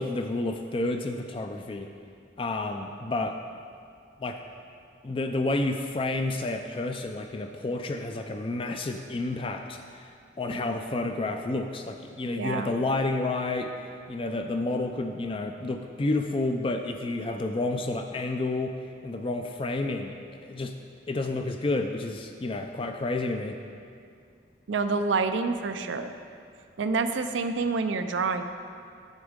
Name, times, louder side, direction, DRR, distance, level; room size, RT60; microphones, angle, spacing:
voice 1, 0.0-1.9 2.4-3.4 4.2-4.4 5.0-10.0 10.4-13.7 14.1-18.8 19.0-20.1 20.4-20.7 21.1-23.6, left 2 dB, 30° left, 5 dB, 0.4 m, -30 dB
voice 2, 12.4-12.7 24.7-26.1 26.8-28.4, right 4 dB, 75° right, 8 dB, 0.5 m, -27 dB
8.2 x 7.2 x 5.0 m, 2.3 s
head